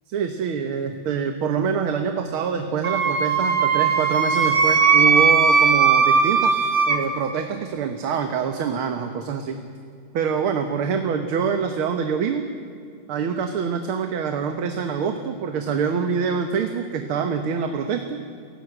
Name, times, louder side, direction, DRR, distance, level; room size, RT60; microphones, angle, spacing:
voice 1, 0.1-6.5 6.9-9.6 10.1-12.4 13.1-18.2, right 6 dB, 80° right, 6 dB, 2.1 m, -25 dB
Wind instrument woodwind instrument, 2.8-7.0, right 5 dB, 55° right, 2.0 m, -18 dB
28.0 x 17.0 x 8.0 m, 2.3 s
omnidirectional pair, 2.3 m